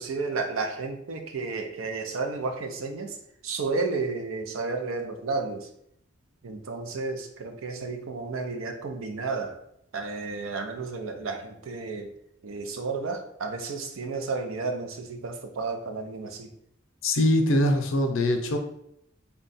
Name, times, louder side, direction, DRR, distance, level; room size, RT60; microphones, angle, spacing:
voice 1, 0.0-3.2 3.4-5.7 6.4-9.6 9.9-12.1 12.4-16.5, right 4 dB, 80° right, 5 dB, 0.5 m, -32 dB
voice 2, 17.0-18.6, left 1 dB, 75° left, 5 dB, 0.6 m, -22 dB
3.6 x 2.3 x 4.0 m, 0.75 s
head